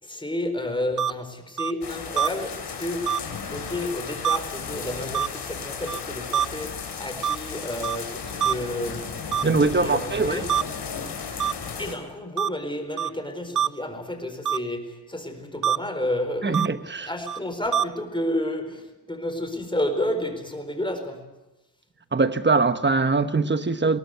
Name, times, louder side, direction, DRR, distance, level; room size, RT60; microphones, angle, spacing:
voice 1, 0.0-3.2 3.5-10.5 11.8-21.3, left 1 dB, 10° left, 4.2 m, -31 dB
sound 1, 1.0-1.1 1.6-1.7 2.2-2.3 3.1-3.2 4.2-4.4 5.1-5.3 5.9-6.0 6.3-6.4 7.2-7.4 7.8-8.0 8.4-8.5 9.3-9.4 10.5-10.6 11.4-11.5 12.4-12.5 13.0-13.1 13.6-13.7 14.5-14.6 15.6-15.8 16.5-16.7 17.3-17.4 17.7-17.8, right 8 dB, 50° right, 0.7 m, -23 dB
sound 2, 1.8-11.9, left 6 dB, 85° left, 3.8 m, -35 dB
voice 2, 9.4-10.4 16.4-17.1 22.1-24.0, right 4 dB, 25° right, 1.2 m, -22 dB
21.5 x 18.0 x 9.3 m
cardioid pair, 95°, 40 cm